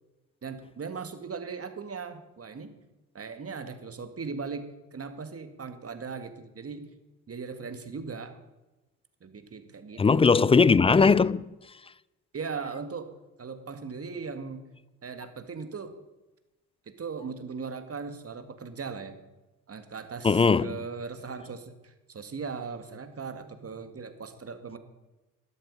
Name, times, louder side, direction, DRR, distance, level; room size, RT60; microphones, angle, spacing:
voice 1, 0.4-2.8 3.1-6.9 7.3-8.4 9.2-10.4 12.3-14.6 15.0-16.0 16.9-19.2 19.7-24.8, right 5 dB, 35° right, 2.2 m, -38 dB
voice 2, 10.0-11.5 20.2-20.8, left 5 dB, 15° left, 0.3 m, -19 dB
12.5 x 12.0 x 5.6 m
hypercardioid pair, 60°, 42 cm